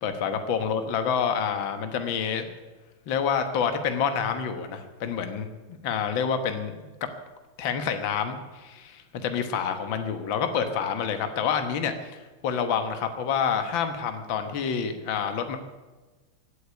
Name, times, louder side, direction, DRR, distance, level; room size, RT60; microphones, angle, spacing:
voice 1, 0.0-2.5 3.1-5.5 5.8-6.7 7.6-15.6, left 7 dB, 65° left, 7 dB, 2.0 m, -28 dB
16.5 x 8.4 x 9.6 m, 1.2 s
omnidirectional pair, 2.4 m